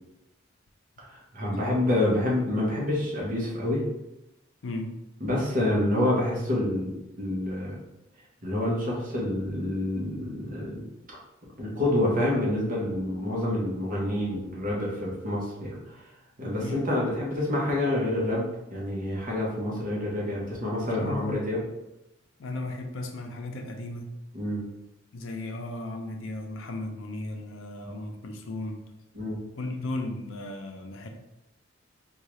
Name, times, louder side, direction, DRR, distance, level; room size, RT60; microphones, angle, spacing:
voice 1, 1.1-3.8 5.2-6.9 7.2-7.8 8.4-10.8 11.6-16.0 16.4-21.6 24.3-24.6 27.8-27.9 29.1-29.4, left 1 dB, 45° right, -4 dB, 1.0 m, -27 dB
voice 2, 21.0-21.4 22.4-24.1 25.1-28.8 29.6-31.1, left 2 dB, 90° left, 3 dB, 0.5 m, -35 dB
3.6 x 2.3 x 3.0 m, 0.92 s
head